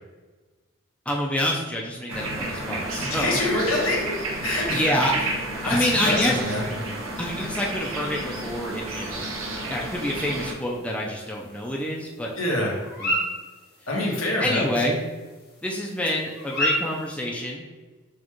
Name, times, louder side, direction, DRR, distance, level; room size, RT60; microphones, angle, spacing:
voice 1, 1.1-3.4 4.7-5.1 5.6-6.4 7.2-9.2 9.7-12.3 13.0-13.2 14.4-15.0 15.6-17.7, left 1 dB, 5° left, -2 dB, 0.4 m, -27 dB
sound 1, 2.1-10.5, right 2 dB, 75° right, 0.7 m, -31 dB
voice 2, 3.1-4.1 4.4-5.3 5.7-6.6 12.4-12.7 13.9-14.7, left 1 dB, 90° left, -3 dB, 1.2 m, -25 dB
sound 2, 10.3-17.2, equal, 50° left, 1.1 m, -33 dB
6.3 x 2.4 x 3.0 m, 1.3 s
head